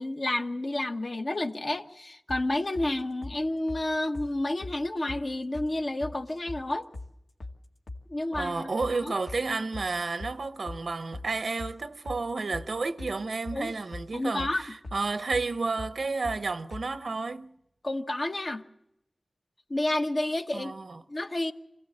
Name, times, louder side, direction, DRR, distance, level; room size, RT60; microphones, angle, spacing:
voice 1, 0.0-6.9 8.1-8.7 9.0-9.1 13.5-13.8 14.1-14.6 17.8-18.6 19.7-20.7 21.1-21.5, left 1 dB, 55° left, 1.2 m, -30 dB
sound 1, 2.3-2.9 3.2-3.4 3.7-3.8 4.1-4.3 4.6-4.8 5.1-5.2 5.5-5.7 6.0-6.6 6.9-7.1 7.4-7.6 7.9-8.0 8.3-8.5 8.8-9.0 9.3-9.4 9.7-10.4 10.7-10.8 11.1-11.3 11.6-11.8 12.0-12.2 12.5-12.7 13.0-13.1 13.4-14.1 14.4-14.5 14.8-15.0 15.3-15.5 15.8-15.9 16.2-16.4 16.7-16.9, left 2 dB, 90° left, 1.9 m, -40 dB
voice 2, 8.3-17.5 20.5-21.0, right 3 dB, 85° right, 0.8 m, -31 dB
25.0 x 16.0 x 7.4 m
wide cardioid pair, 50°, 0 cm